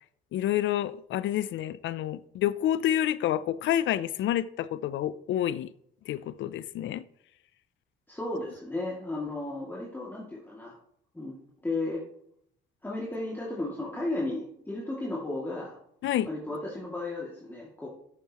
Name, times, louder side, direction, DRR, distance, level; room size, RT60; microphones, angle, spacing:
voice 1, 0.3-5.7 6.1-7.0 16.0-16.3, left 12 dB, 70° left, 0.5 m, -28 dB
voice 2, 8.1-10.8 11.1-12.0 12.8-15.8 16.2-17.9, left 2 dB, 10° left, 2.3 m, -34 dB
10.5 x 8.3 x 3.0 m
cardioid pair, 90°, 20 cm